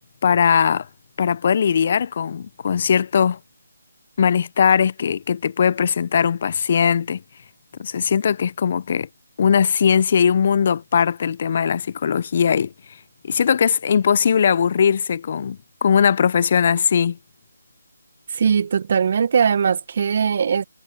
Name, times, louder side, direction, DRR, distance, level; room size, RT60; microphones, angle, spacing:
voice 1, 0.2-0.9 1.2-3.4 4.2-7.2 7.8-9.1 9.4-12.7 13.2-17.2, left 7 dB, 40° left, 0.8 m, -19 dB
voice 2, 18.3-20.6, right 6 dB, 45° right, 1.5 m, -20 dB
figure-of-eight pair, 155°, 0 cm